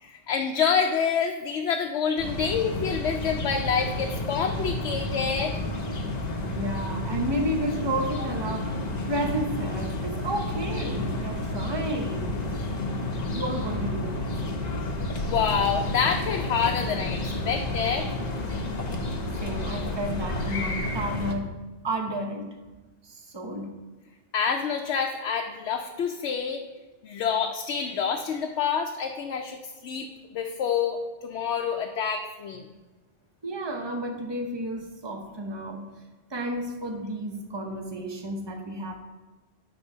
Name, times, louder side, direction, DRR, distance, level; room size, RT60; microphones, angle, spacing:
voice 1, 0.0-5.6 15.3-18.1 24.3-26.6 27.0-32.6, left 6 dB, 85° left, 3 dB, 0.9 m, -27 dB
sound 1, 2.2-21.3, left 2 dB, 45° left, 0.8 m, -31 dB
voice 2, 6.4-8.8 9.1-12.4 13.3-14.3 19.4-21.5 21.8-22.5 23.0-23.7 33.4-35.9 36.3-39.0, right 1 dB, 25° right, 3 dB, 0.8 m, -31 dB
8.4 x 3.9 x 5.4 m, 1.2 s
omnidirectional pair, 1.1 m